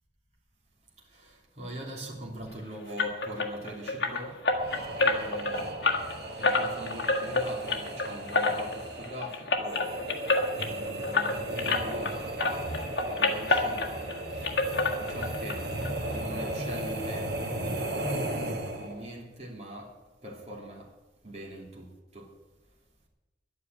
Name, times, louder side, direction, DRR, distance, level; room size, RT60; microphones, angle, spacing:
voice 1, 1.6-4.3 5.0-5.7 6.3-9.8 10.7-12.6 13.1-14.1 15.0-15.6 16.0-17.3 18.7-19.9 20.2-20.8 21.2-21.8 22.1-22.3, equal, 35° right, -2 dB, 2.9 m, -41 dB
sound 1, 3.0-12.1 12.4-14.2 14.4-15.6 15.8-15.9 16.4-16.5 16.8-16.9, left 3 dB, 65° left, 1.7 m, -28 dB
sound 2, 4.5-19.1, right 1 dB, 60° right, 1.8 m, -35 dB
11.0 x 9.3 x 9.0 m, 1.1 s
head